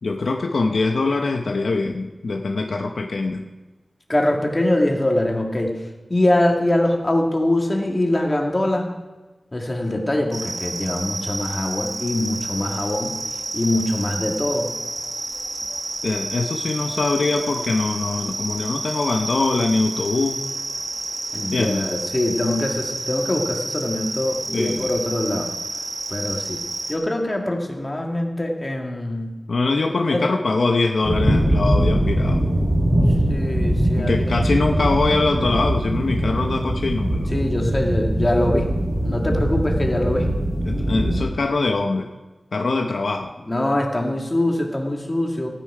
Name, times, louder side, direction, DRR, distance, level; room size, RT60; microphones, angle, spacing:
voice 1, 0.0-3.5 16.0-20.4 21.5-21.9 24.5-25.0 29.5-32.4 34.0-37.3 40.6-42.1 42.5-43.3, left 3 dB, 75° left, 3 dB, 0.8 m, -23 dB
voice 2, 4.1-5.8 6.1-8.9 9.5-13.2 13.5-14.8 21.3-25.5 26.1-26.6 26.9-29.4 30.1-30.2 33.3-34.3 37.3-38.7 39.0-40.3 43.4-45.5, left 1 dB, 25° left, 1 dB, 2.0 m, -23 dB
sound 1, 10.3-26.9, right 2 dB, 65° right, 1.6 m, -30 dB
sound 2, 31.0-41.2, right 1 dB, 25° right, 5.1 m, -21 dB
15.0 x 9.9 x 4.9 m, 1.2 s
wide cardioid pair, 95°, 0 cm